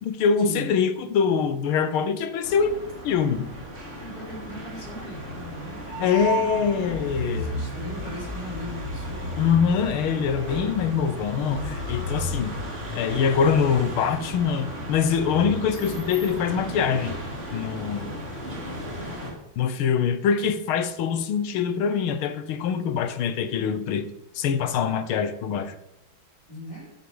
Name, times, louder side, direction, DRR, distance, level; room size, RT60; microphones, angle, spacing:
voice 1, 0.0-2.7 3.0-3.5 6.0-7.5 9.4-12.5 13.0-17.2 17.5-18.1 19.6-24.1 24.4-25.8, left 7 dB, 80° left, 11 dB, 1.7 m, -24 dB
sound 1, 2.4-19.3, equal, 35° right, 3.2 m, -33 dB
voice 2, 4.0-9.4 26.5-26.9, equal, 45° left, -5 dB, 5.5 m, -38 dB
11.5 x 9.3 x 5.5 m, 0.89 s
omnidirectional pair, 2.3 m